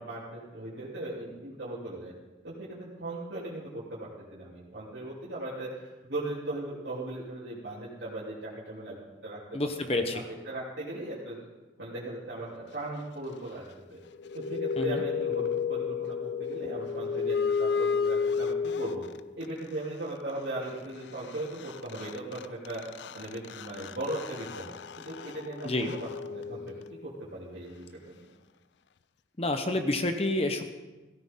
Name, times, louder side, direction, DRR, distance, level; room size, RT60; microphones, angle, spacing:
voice 1, 0.0-2.1 2.4-9.6 9.9-11.5 11.8-13.6 13.9-14.0 14.3-19.0 19.3-22.8 23.1-24.7 25.0-25.7 26.0-28.3, right 1 dB, 70° right, -8 dB, 3.0 m, -38 dB
voice 2, 9.5-10.2 14.8-15.0 25.6-25.9 29.4-30.6, left 2 dB, 30° left, 6 dB, 1.0 m, -28 dB
sound 1, 14.1-19.5 21.3-21.4 21.6-27.1, left 6 dB, 70° left, 0.4 m, -32 dB
16.5 x 13.5 x 3.8 m, 1.1 s
head